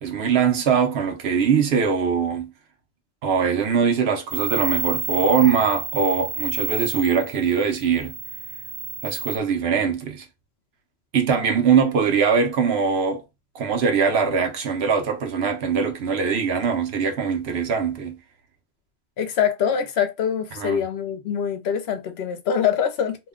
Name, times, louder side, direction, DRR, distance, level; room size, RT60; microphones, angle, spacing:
voice 1, 0.0-2.5 3.2-8.1 9.0-10.2 11.1-13.2 13.5-18.2 20.6-20.8, right 6 dB, 75° right, 0.9 m, -22 dB
sound 1, 4.3-9.4, right 5 dB, 50° right, 0.6 m, -30 dB
voice 2, 19.2-23.2, left 8 dB, 75° left, 0.9 m, -24 dB
2.7 x 2.1 x 3.5 m
omnidirectional pair, 1.1 m